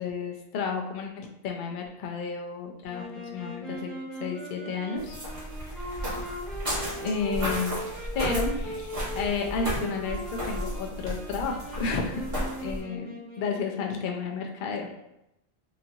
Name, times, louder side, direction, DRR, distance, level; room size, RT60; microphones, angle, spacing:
voice 1, 0.0-3.9 4.2-5.2 5.6-6.2 7.0-8.9 9.1-12.2 12.6-15.0, left 5 dB, 60° left, 2 dB, 0.6 m, -32 dB
Wind instrument woodwind instrument, 2.9-14.0, equal, ahead, 0.5 m, -39 dB
sound 1, 5.0-12.8, equal, 30° right, 1.2 m, -34 dB
3.0 x 2.7 x 2.6 m, 0.85 s
omnidirectional pair, 1.1 m